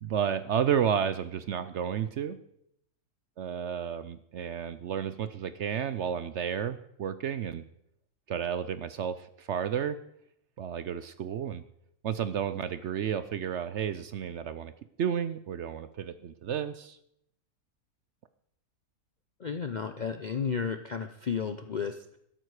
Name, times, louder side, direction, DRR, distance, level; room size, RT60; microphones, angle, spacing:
voice 1, 0.0-2.4 3.4-7.6 8.3-10.0 10.6-11.6 12.0-14.7 15.0-17.0, right 8 dB, 60° right, 13 dB, 0.8 m, -31 dB
voice 2, 19.4-22.2, left 6 dB, 55° left, 8 dB, 0.5 m, -33 dB
12.5 x 12.0 x 4.8 m, 0.73 s
omnidirectional pair, 1.6 m